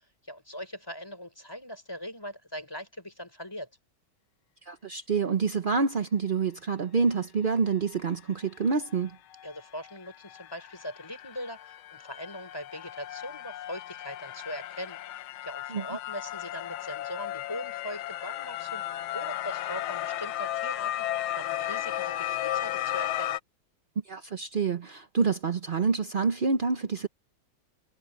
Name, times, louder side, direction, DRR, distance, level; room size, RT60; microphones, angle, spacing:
voice 1, 0.2-3.7 9.4-15.0 15.4-18.9 19.1-23.4, equal, 10° left, 5.0 m, -41 dB
voice 2, 4.7-9.2 15.7-15.8 24.1-27.1, right 5 dB, 60° right, 0.5 m, -27 dB
sound 1, 8.9-9.0 9.3-23.4, left 13 dB, 90° left, 1.6 m, -35 dB
omnidirectional pair, 2.2 m